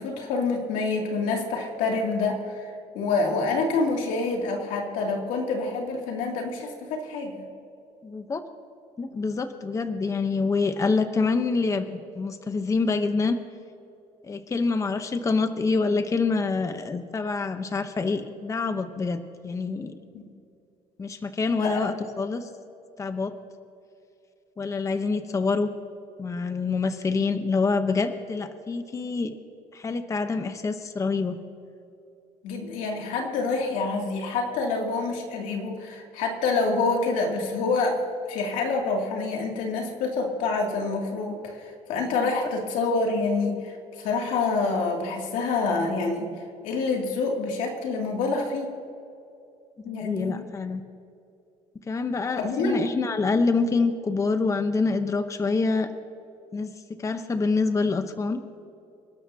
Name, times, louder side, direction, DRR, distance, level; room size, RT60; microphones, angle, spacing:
voice 1, 0.0-7.5 20.1-20.3 21.6-21.9 32.4-38.0 38.3-46.3 46.6-48.7 49.8-50.4 52.4-52.9, left 3 dB, 90° left, 1 dB, 2.6 m, -27 dB
voice 2, 8.0-8.4 9.0-13.4 14.2-19.9 21.0-22.5 23.0-23.3 24.6-25.7 26.2-29.3 29.7-31.4 42.2-42.3 49.9-50.8 51.9-55.9 56.5-56.7 57.0-58.4, left 4 dB, 25° left, 8 dB, 0.9 m, -26 dB
28.0 x 12.5 x 2.8 m, 2.7 s
cardioid pair, 115°, 13 cm